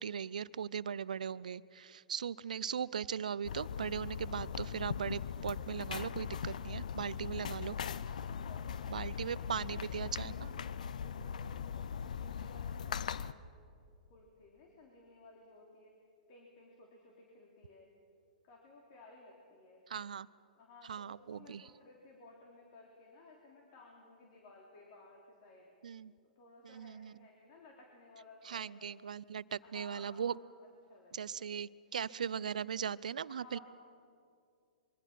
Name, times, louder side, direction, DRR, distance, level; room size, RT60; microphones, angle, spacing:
voice 1, 0.0-7.8 8.9-10.5 19.9-20.3 20.8-21.7 25.8-26.1 26.6-27.3 28.4-30.4 31.1-33.6, right 7 dB, 75° right, 19 dB, 0.5 m, -39 dB
sound 1, 3.4-13.3, left 7 dB, 70° left, 0.6 m, -40 dB
voice 2, 8.3-10.6 11.0-13.4 14.1-15.9 16.3-17.9 18.4-19.8 20.5-25.7 26.4-28.9 29.6-31.4 33.3-33.6, left 2 dB, 50° left, -1 dB, 3.3 m, -58 dB
25.0 x 23.0 x 5.9 m, 2.4 s
hypercardioid pair, 115°, 4 cm